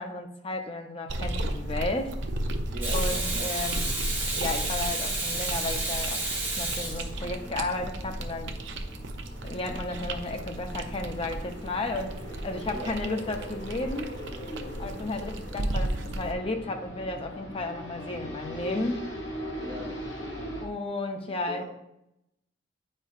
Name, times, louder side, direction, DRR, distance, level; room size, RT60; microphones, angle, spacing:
voice 1, 0.0-2.1 2.9-3.9 4.3-6.2 6.6-8.5 9.4-12.2 12.4-14.1 14.8-19.0 20.6-21.6, left 2 dB, 30° left, 4 dB, 0.7 m, -33 dB
sound 1, 1.1-16.3, right 1 dB, 80° right, 0.6 m, -34 dB
sound 2, 1.2-20.7, equal, 85° left, 1.3 m, -41 dB
voice 2, 2.7-3.5 12.7-13.1 19.6-19.9 21.2-21.6, equal, 55° right, -8 dB, 1.2 m, -40 dB
Water tap faucet / Sink (filling or washing), 2.8-7.6 10.0-10.1, right 2 dB, 15° right, 1.1 m, -31 dB
9.0 x 4.4 x 2.4 m, 0.83 s
head